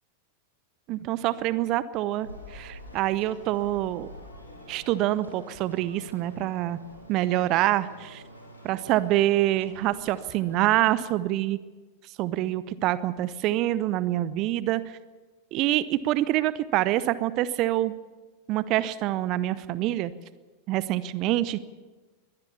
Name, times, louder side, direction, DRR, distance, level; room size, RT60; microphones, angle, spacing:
voice 1, 0.9-4.1 4.7-6.8 7.1-8.2 8.6-11.6 12.2-14.8 15.5-17.9 18.5-20.1 20.7-21.6, right 15 dB, 40° right, 17 dB, 0.7 m, -26 dB
sound 1, 2.2-10.9, equal, 85° left, 5.0 m, -47 dB
23.0 x 17.5 x 7.0 m, 1.3 s
figure-of-eight pair, 90°, 0 cm